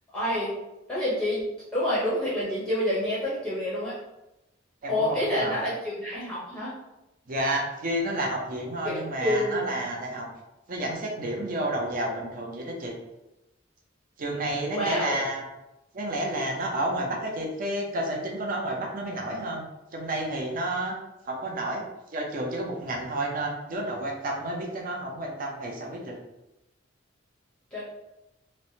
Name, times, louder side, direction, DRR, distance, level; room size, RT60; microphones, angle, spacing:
voice 1, 0.1-0.5 0.9-1.4 1.7-4.0 4.9-6.7 8.8-9.8 14.7-15.2 27.7-27.8, left 1 dB, 5° left, -9 dB, 0.6 m, -28 dB
voice 2, 4.8-5.6 7.3-10.3 10.7-13.0 14.2-15.5 15.9-19.7 19.9-21.0 21.3-21.8 22.1-26.2, right 1 dB, 45° right, 0 dB, 0.5 m, -30 dB
3.1 x 2.0 x 2.7 m, 0.92 s
head